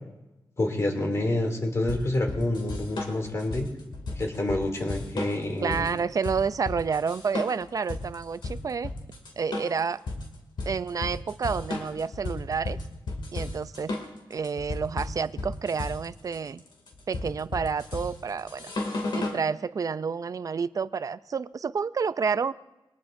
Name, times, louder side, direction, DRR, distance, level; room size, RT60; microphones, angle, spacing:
voice 1, 0.6-3.7 4.2-5.7, left 1 dB, 40° left, 2 dB, 2.7 m, -28 dB
sound 1, 1.9-19.4, left 2 dB, 85° left, 2.5 m, -34 dB
voice 2, 5.6-8.9 9.4-10.0 10.7-12.8 13.3-13.9 14.3-16.6 17.1-18.7 19.1-22.5, right 5 dB, 50° right, 14 dB, 0.5 m, -29 dB
23.5 x 18.5 x 2.6 m, 1.0 s
wide cardioid pair, 110°, 8 cm